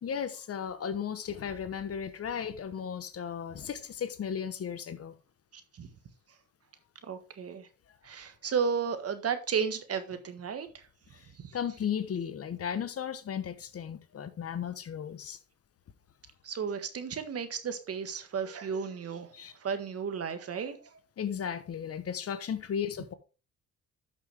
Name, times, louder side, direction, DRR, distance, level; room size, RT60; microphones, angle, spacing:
voice 1, 0.0-5.1 11.1-15.4 19.3-19.5 21.2-23.1, left 8 dB, 50° left, 1.2 m, -35 dB
voice 2, 5.5-5.9 7.1-7.7 8.0-10.8 11.4-11.6 16.4-19.3 19.6-20.8, right 6 dB, 55° right, 1.6 m, -33 dB
11.5 x 6.1 x 3.5 m
cardioid pair, 90°, 30 cm